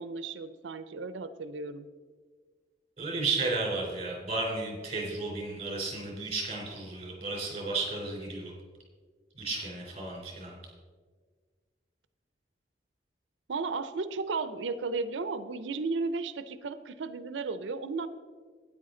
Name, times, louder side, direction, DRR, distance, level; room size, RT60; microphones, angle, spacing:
voice 1, 0.0-1.9 13.5-18.1, right 4 dB, 80° right, 13 dB, 0.5 m, -34 dB
voice 2, 3.0-8.5 9.4-10.5, right 3 dB, 35° right, -1 dB, 3.5 m, -33 dB
12.5 x 9.6 x 3.8 m, 1.5 s
head